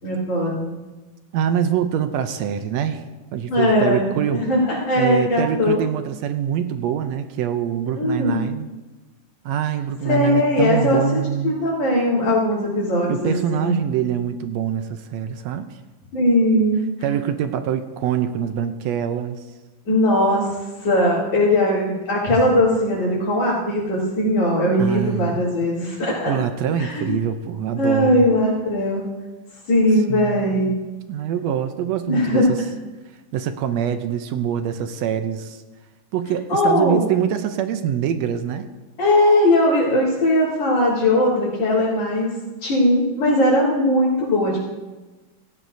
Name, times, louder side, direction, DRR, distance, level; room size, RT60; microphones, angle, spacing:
voice 1, 0.0-0.7 3.5-5.8 7.9-8.4 10.0-13.7 16.1-17.1 19.9-26.4 26.8-27.1 27.8-29.0 29.7-30.7 32.1-32.5 36.5-37.1 39.0-42.3 42.6-44.7, left 1 dB, 55° left, -10 dB, 4.6 m, -19 dB
voice 2, 1.3-3.0 3.3-4.4 4.9-8.7 9.4-11.5 13.0-15.7 17.0-19.3 24.8-25.4 26.3-28.3 30.1-30.4 31.1-32.6 33.3-35.6 36.1-38.7, right 9 dB, 75° right, 9 dB, 1.7 m, -24 dB
17.0 x 16.5 x 2.7 m, 1.2 s
omnidirectional pair, 3.6 m